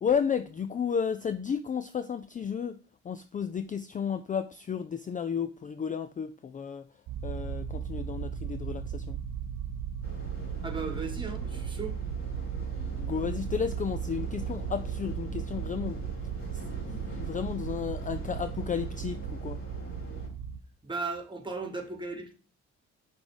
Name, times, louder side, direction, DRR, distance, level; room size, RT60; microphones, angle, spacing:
voice 1, 0.0-2.8 3.0-6.9 7.2-9.2 13.0-16.1 16.7-19.6, left 7 dB, 25° left, 0.4 m, -33 dB
sound 1, 7.1-20.6, right 8 dB, 75° right, 0.7 m, -36 dB
sound 2, 10.0-20.3, left 2 dB, 45° left, 3.5 m, -46 dB
voice 2, 10.6-12.0 20.8-22.3, right 4 dB, 15° right, 1.7 m, -36 dB
6.0 x 3.7 x 4.9 m
cardioid pair, 90°, 30 cm